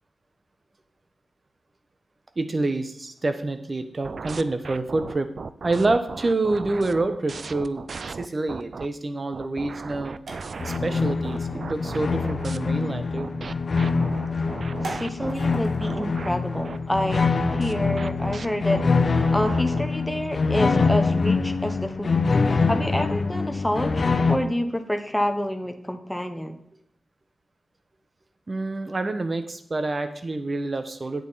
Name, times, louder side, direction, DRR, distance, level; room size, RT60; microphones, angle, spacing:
voice 1, 2.4-5.3 5.6-10.2 10.6-13.3 28.5-31.3, right 2 dB, 35° right, 9 dB, 1.1 m, -27 dB
sound 1, 4.0-8.9 9.3-12.6 13.2-19.9, right 4 dB, 60° right, 0.4 m, -37 dB
metallic scratches an rubs, 9.0-17.6, right 2 dB, 80° right, 1.8 m, -46 dB
sound 2, 10.6-24.4, left 4 dB, 55° left, 0.9 m, -24 dB
voice 2, 14.8-22.2 22.7-26.5, equal, 5° left, 7 dB, 1.1 m, -28 dB
9.1 x 8.5 x 4.1 m, 0.74 s
cardioid pair, 75°, 0 cm